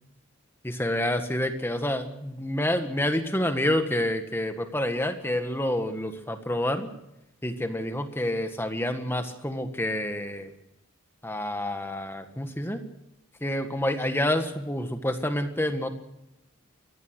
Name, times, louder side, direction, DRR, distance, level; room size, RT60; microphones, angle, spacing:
voice 1, 0.6-6.9 7.4-10.5 11.2-12.8 13.4-15.9, left 1 dB, 10° left, 7 dB, 1.5 m, -28 dB
23.5 x 17.5 x 6.5 m, 0.87 s
head